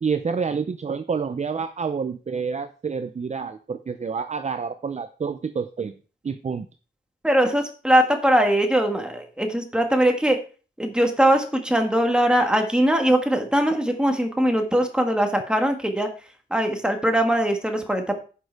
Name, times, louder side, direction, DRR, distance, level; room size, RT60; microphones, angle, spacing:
voice 1, 0.0-5.9 6.2-6.7, right 5 dB, 35° right, 10 dB, 0.5 m, -28 dB
voice 2, 7.2-10.4 10.8-16.1 16.5-18.1, right 1 dB, 5° right, 3 dB, 1.7 m, -21 dB
10.0 x 6.5 x 4.6 m, 0.37 s
wide cardioid pair, 145°, 20 cm